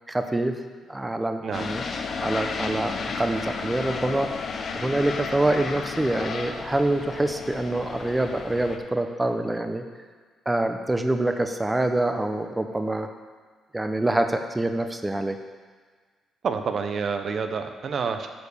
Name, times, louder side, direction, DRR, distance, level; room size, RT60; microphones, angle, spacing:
voice 1, 0.1-0.5 0.9-1.8 2.2-4.3 4.7-9.8 10.5-13.1 13.7-15.4, right 1 dB, 15° right, 7 dB, 0.7 m, -25 dB
sound 1, 1.5-8.8, left 4 dB, 50° left, 0.8 m, -33 dB
voice 2, 16.4-18.3, right 5 dB, 55° right, 7 dB, 0.6 m, -28 dB
8.9 x 5.2 x 6.8 m, 1.5 s
cardioid pair, 90°, 0 cm